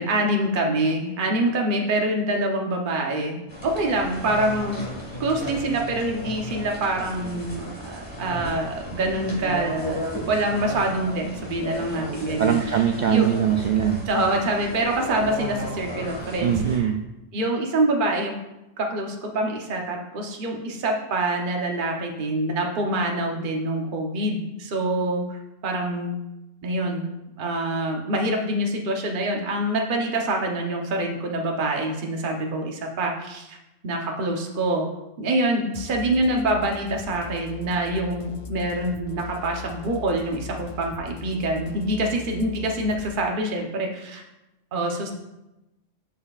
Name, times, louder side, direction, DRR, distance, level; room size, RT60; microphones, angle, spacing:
voice 1, 0.0-4.8 5.2-12.6 13.1-13.3 14.1-16.9 17.3-18.4 18.8-26.1 26.6-27.1 27.4-33.6 33.8-34.9 35.2-44.2 44.7-45.1, right 1 dB, 45° right, 1 dB, 1.0 m, -25 dB
sound 1, 3.5-16.8, equal, 20° left, 1.8 m, -34 dB
voice 2, 12.4-14.0 16.4-17.0, right 9 dB, 70° right, 4 dB, 0.4 m, -21 dB
sound 2, 35.7-43.1, left 5 dB, 55° left, 0.3 m, -40 dB
12.5 x 5.5 x 2.4 m, 0.96 s
omnidirectional pair, 1.3 m